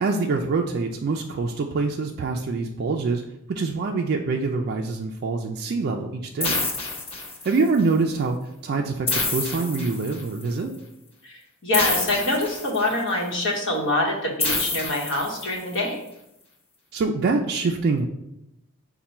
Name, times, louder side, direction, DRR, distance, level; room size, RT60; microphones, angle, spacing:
voice 1, 0.0-3.2 3.5-6.6 7.4-8.4 8.6-10.7 16.9-18.0, right 4 dB, 50° right, 2 dB, 0.3 m, -25 dB
sound 1, 6.4-7.8 9.1-10.4 11.7-13.1 14.4-15.8, left 3 dB, 30° left, 0.8 m, -28 dB
voice 2, 11.2-16.0, left 2 dB, 65° left, 0 dB, 1.0 m, -25 dB
5.6 x 2.2 x 4.2 m, 0.85 s
head